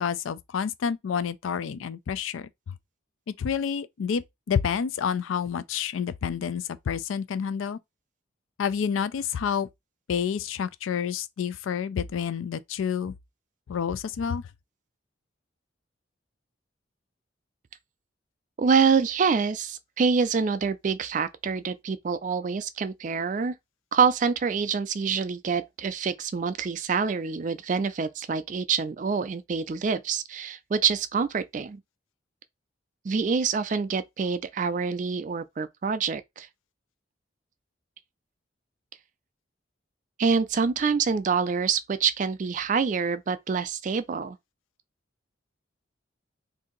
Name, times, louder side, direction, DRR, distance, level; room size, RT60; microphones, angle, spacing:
voice 1, 0.0-2.7 3.4-7.8 8.6-9.7 10.1-13.1 13.7-14.4, left 7 dB, 85° left, 0.4 m, -29 dB
voice 2, 18.6-23.5 23.9-31.8 33.0-36.5 40.2-44.4, right 5 dB, 40° right, 0.3 m, -26 dB
2.7 x 2.6 x 3.8 m
head